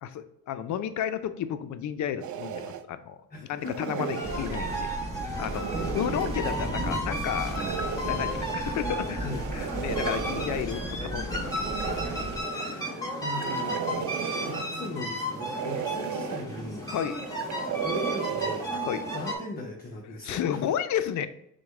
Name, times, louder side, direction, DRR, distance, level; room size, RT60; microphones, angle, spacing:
voice 1, 0.0-4.9 5.4-5.6 5.9-7.7 7.9-9.2 9.5-11.5 12.5-12.9 13.9-14.0 16.9-17.2 18.8-19.0 20.2-21.3, left 9 dB, 60° left, 11 dB, 0.5 m, -32 dB
sound 1, 2.2-2.8 3.6-4.9 5.3-6.7 7.4-8.6 9.3-10.7 11.4-12.7 13.3-14.8 15.3-16.4 17.1-18.7, right 8 dB, 65° right, 0.5 m, -35 dB
voice 2, 3.3-4.1 9.2-9.5 12.6-13.8 14.3-16.9 17.8-18.7 19.1-20.7, left 2 dB, 30° left, -1 dB, 0.8 m, -38 dB
sound 2, 4.1-19.4, equal, 10° left, 1.4 m, -33 dB
sound 3, 4.2-12.4, equal, 20° right, 0.8 m, -37 dB
6.1 x 2.2 x 3.5 m, 0.76 s
cardioid pair, 100°, 32 cm